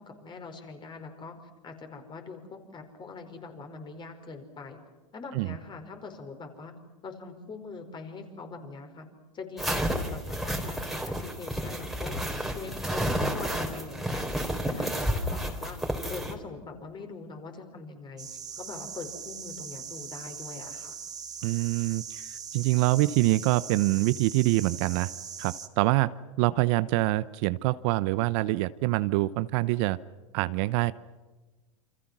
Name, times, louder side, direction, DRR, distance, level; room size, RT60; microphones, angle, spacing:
voice 1, 0.0-1.4 1.6-4.8 5.1-6.7 7.0-9.1 9.3-14.3 14.6-15.8 16.1-21.0, left 4 dB, 25° left, 6 dB, 5.1 m, -43 dB
sound 1, 9.6-16.3, equal, ahead, 3.9 m, -31 dB
sound 2, 18.2-25.7, right 7 dB, 20° right, 2.4 m, -40 dB
voice 2, 21.4-25.1 25.4-26.1 26.4-30.0 30.3-30.9, right 19 dB, 55° right, 15 dB, 0.9 m, -25 dB
28.5 x 26.5 x 6.2 m, 1.2 s
hypercardioid pair, 110°, 18 cm